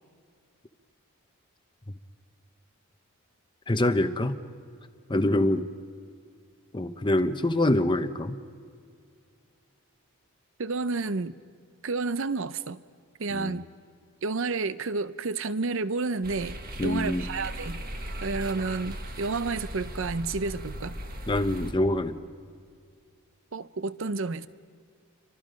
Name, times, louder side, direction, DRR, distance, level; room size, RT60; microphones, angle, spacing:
voice 1, 3.7-4.4 5.1-5.7 6.7-8.4 13.3-13.6 16.8-17.3 21.3-22.2, left 1 dB, 20° left, 9 dB, 0.8 m, -25 dB
voice 2, 10.6-11.3 11.8-12.8 13.2-13.7 14.2-17.8 18.2-21.0 23.5-24.5, right 3 dB, 60° right, 14 dB, 0.7 m, -30 dB
sound 1, 16.2-21.7, equal, 45° right, 1.5 m, -38 dB
29.5 x 24.5 x 5.2 m, 2.2 s
head